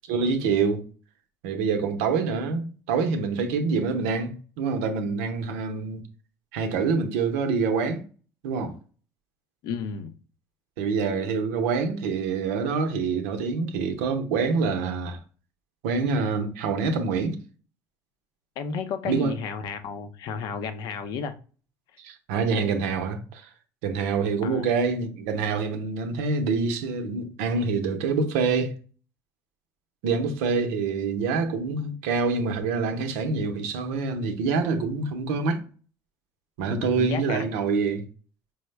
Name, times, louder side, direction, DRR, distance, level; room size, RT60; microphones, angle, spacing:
voice 1, 0.1-0.8 1.4-6.0 6.5-8.0 8.4-8.8 10.8-15.2 15.8-17.4 19.0-19.3 22.0-23.5 23.8-28.8 30.0-35.6 36.6-38.0, right 4 dB, 90° right, 0.7 m, -26 dB
voice 2, 9.6-10.1 18.6-21.3 24.4-24.6 36.7-37.5, left 6 dB, 65° left, 0.6 m, -32 dB
4.7 x 2.1 x 3.2 m
supercardioid pair, 100°, 8 cm